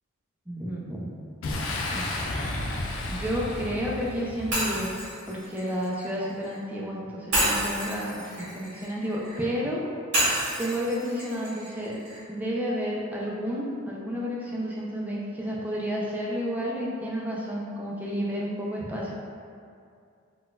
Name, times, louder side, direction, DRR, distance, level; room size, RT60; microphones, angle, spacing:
voice 1, 0.5-1.1 1.8-2.1 3.1-9.8 10.6-12.0 12.3-19.1, equal, 10° right, -5 dB, 0.3 m, -31 dB
Boom, 1.4-5.0, left 2 dB, 70° left, 0.4 m, -32 dB
Shatter, 4.5-6.6 7.3-9.4 10.1-12.2, right 1 dB, 55° right, 1.4 m, -29 dB
4.0 x 2.2 x 2.3 m, 2.4 s
head